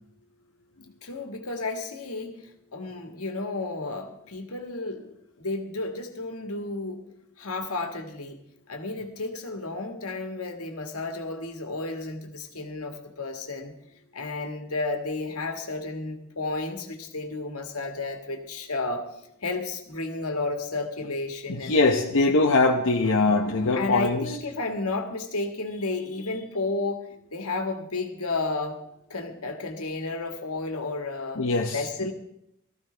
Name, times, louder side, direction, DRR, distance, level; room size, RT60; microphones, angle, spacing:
voice 1, 1.0-2.4 2.7-7.0 7.4-8.4 8.7-13.7 14.1-19.1 19.4-22.2 23.7-28.8 29.1-31.4 31.7-32.1, left 3 dB, 80° left, 4 dB, 1.9 m, -32 dB
voice 2, 21.5-24.2 31.4-31.8, left 3 dB, 60° left, 1 dB, 0.9 m, -22 dB
18.0 x 14.5 x 3.4 m, 0.78 s
head